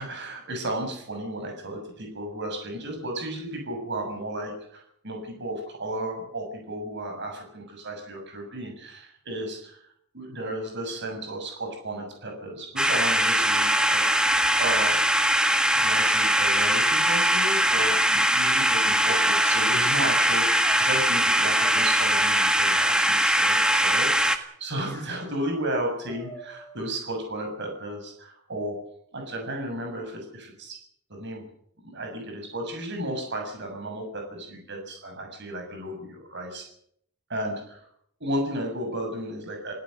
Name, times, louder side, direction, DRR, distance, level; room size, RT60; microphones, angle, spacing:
voice 1, 0.0-9.8 10.1-14.1 14.6-15.0 15.8-28.8 29.1-30.8 31.1-31.5 31.8-36.7 37.3-37.9 38.2-39.7, right 1 dB, 55° right, 3 dB, 7.0 m, -33 dB
sound 1, 12.8-24.4, right 1 dB, 5° right, 1.6 m, -21 dB
sound 2, 17.7-18.2 19.0-19.7 20.5-20.9 21.5-22.3 22.6-23.1 23.6-24.1 24.8-25.7 26.1-26.8, equal, 15° left, 7.8 m, -43 dB
28.0 x 17.0 x 6.6 m, 0.70 s
head